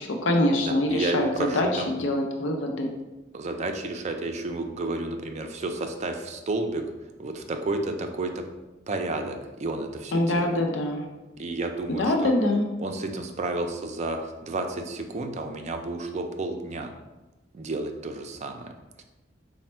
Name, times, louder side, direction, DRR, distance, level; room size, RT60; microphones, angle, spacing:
voice 1, 0.0-2.9 10.1-11.0 12.0-12.6, left 1 dB, 85° left, 2 dB, 0.5 m, -24 dB
voice 2, 0.6-1.9 3.3-6.8 7.2-8.4 8.9-10.6 11.4-12.3 12.8-16.9 17.5-18.7 19.0-19.1, right 2 dB, 35° right, 5 dB, 0.4 m, -31 dB
4.2 x 2.1 x 4.3 m, 1.1 s
head